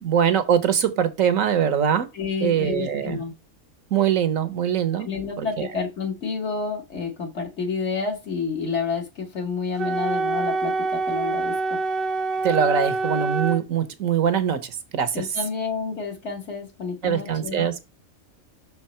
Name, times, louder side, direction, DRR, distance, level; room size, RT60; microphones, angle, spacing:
voice 1, 0.0-2.1 2.4-3.2 3.9-5.1 5.4-5.7 12.4-15.2 17.0-17.8, right 8 dB, 70° right, 1.2 m, -22 dB
voice 2, 2.1-3.3 5.0-11.8 15.1-17.7, left 5 dB, 55° left, 1.7 m, -29 dB
Wind instrument woodwind instrument, 9.8-13.6, right 3 dB, 55° right, 0.6 m, -25 dB
6.1 x 4.6 x 4.2 m
omnidirectional pair, 1.5 m